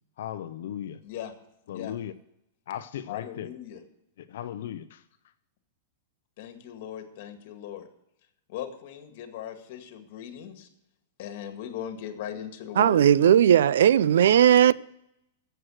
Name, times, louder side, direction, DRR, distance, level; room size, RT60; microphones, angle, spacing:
voice 1, 0.2-1.0 1.7-2.1 2.7-3.5 4.2-5.1, left 10 dB, 65° left, 0.6 m, -36 dB
voice 2, 3.1-3.8 6.4-7.9 8.5-10.7 11.2-13.1, left 10 dB, 45° left, 1.9 m, -38 dB
voice 3, 12.8-14.7, right 9 dB, 75° right, 0.4 m, -17 dB
14.5 x 7.9 x 6.4 m
supercardioid pair, 170°, 0 cm